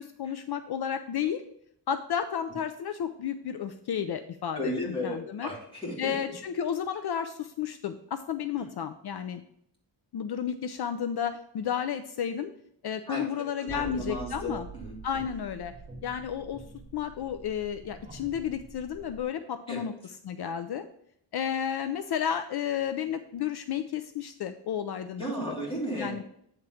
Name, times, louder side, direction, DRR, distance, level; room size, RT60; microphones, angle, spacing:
voice 1, 0.0-1.4 1.9-5.5 6.0-9.4 10.1-12.5 12.8-14.7 15.0-15.7 16.0-16.6 16.9-19.9 20.2-20.8 21.3-25.5 26.0-26.2, left 8 dB, 60° left, 8 dB, 0.5 m, -32 dB
voice 2, 4.5-6.1 13.1-15.0 19.7-19.8 25.2-26.1, equal, 10° left, -5 dB, 2.9 m, -34 dB
sound 1, 13.7-19.2, right 4 dB, 15° right, 0.9 m, -46 dB
9.0 x 3.7 x 5.6 m, 0.70 s
wide cardioid pair, 140°, 43 cm